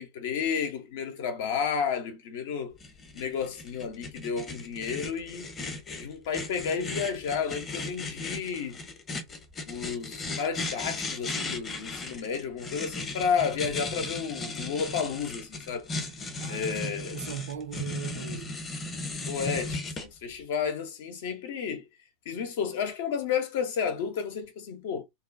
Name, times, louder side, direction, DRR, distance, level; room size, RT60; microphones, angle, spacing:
voice 1, 0.0-2.7 3.1-5.5 6.0-8.8 9.6-15.9 16.5-17.2 19.3-21.9 22.3-25.0, left 6 dB, 55° left, 0.7 m, -32 dB
sound 1, 2.8-20.1, left 3 dB, 25° left, 0.8 m, -36 dB
voice 2, 16.4-18.5, right 9 dB, 60° right, 0.5 m, -39 dB
2.6 x 2.2 x 2.5 m
figure-of-eight pair, 90°, 0 cm